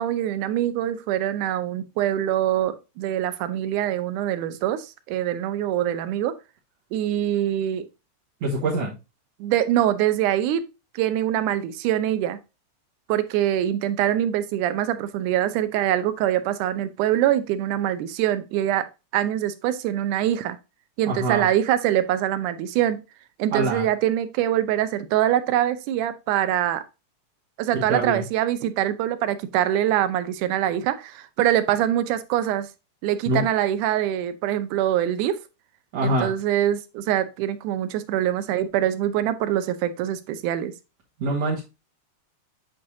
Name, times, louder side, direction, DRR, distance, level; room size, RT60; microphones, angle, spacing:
voice 1, 0.0-6.3 6.9-7.9 9.4-10.6 10.9-12.4 13.1-18.9 19.1-20.6 21.0-23.0 23.4-26.8 27.6-32.7 33.0-35.4 36.0-40.7, right 12 dB, 80° right, 12 dB, 2.1 m, -24 dB
voice 2, 8.4-8.9 21.0-21.5 23.5-23.9 27.7-28.2 33.3-33.5 35.9-36.4 41.2-41.6, right 2 dB, 60° right, -4 dB, 2.3 m, -24 dB
8.1 x 5.5 x 2.7 m, 0.28 s
omnidirectional pair, 3.6 m